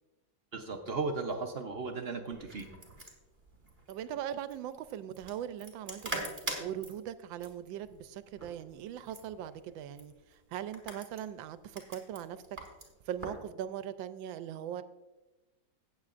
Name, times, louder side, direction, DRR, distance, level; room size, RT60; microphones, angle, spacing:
voice 1, 0.5-2.7, right 4 dB, 60° right, 4 dB, 0.6 m, -36 dB
sound 1, 2.3-13.4, right 1 dB, 25° right, 2.3 m, -45 dB
voice 2, 3.9-6.2 6.6-10.1 10.5-12.4 13.1-14.8, right 10 dB, 85° right, 13 dB, 1.3 m, -40 dB
17.0 x 7.6 x 2.5 m, 1.1 s
omnidirectional pair, 2.0 m